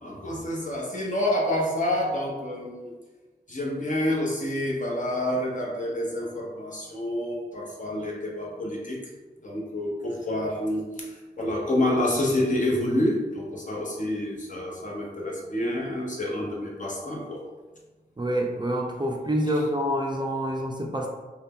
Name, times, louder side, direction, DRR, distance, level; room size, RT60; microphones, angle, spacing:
voice 1, 0.0-2.9 3.5-9.0 9.4-17.4, left 1 dB, 45° left, -2 dB, 0.8 m, -28 dB
voice 2, 18.2-21.1, equal, 25° right, 0 dB, 0.4 m, -27 dB
2.6 x 2.2 x 3.5 m, 1.2 s
cardioid pair, 45°, 18 cm